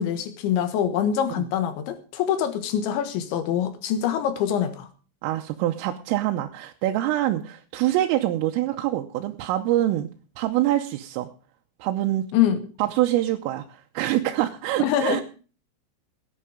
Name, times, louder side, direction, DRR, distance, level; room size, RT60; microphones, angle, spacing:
voice 1, 0.0-4.9 12.3-12.7 14.8-15.2, left 9 dB, 70° left, 3.6 m, -24 dB
voice 2, 5.2-10.1 10.4-11.3 11.8-12.3 12.8-15.2, right 14 dB, 90° right, 3.5 m, -25 dB
17.0 x 9.9 x 5.0 m
omnidirectional pair, 5.8 m